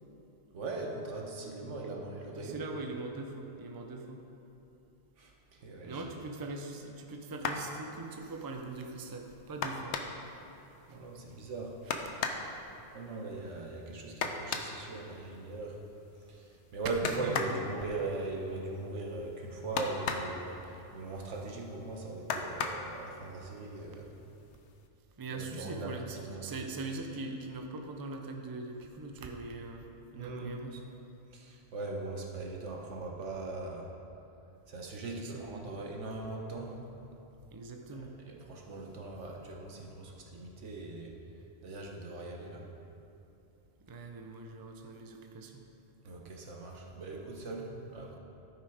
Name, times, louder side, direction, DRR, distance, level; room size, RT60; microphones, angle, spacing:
voice 1, 0.5-2.6 5.2-6.0 9.9-10.0 10.9-11.7 12.9-15.8 16.3-24.1 25.3-25.9 26.2-26.4 30.1-30.6 31.3-33.9 34.7-36.8 37.9-41.1 41.6-42.7 46.0-48.2, right 3 dB, 85° right, 0 dB, 1.4 m, -40 dB
voice 2, 2.3-4.2 5.8-9.9 10.9-11.0 11.3-11.4 11.9-12.0 17.0-17.6 25.2-29.9 30.1-30.8 35.1-35.8 37.5-38.2 43.9-45.6, right 3 dB, 25° right, 3 dB, 0.5 m, -42 dB
sound 1, 7.3-7.7 9.6-10.3 11.9-12.5 14.2-14.8 17.0-17.6 19.8-20.4 22.3-22.9 24.0-24.1 24.5-24.8, left 5 dB, 75° left, 1.0 m, -34 dB
12.5 x 5.7 x 4.9 m, 2.9 s
omnidirectional pair, 1.2 m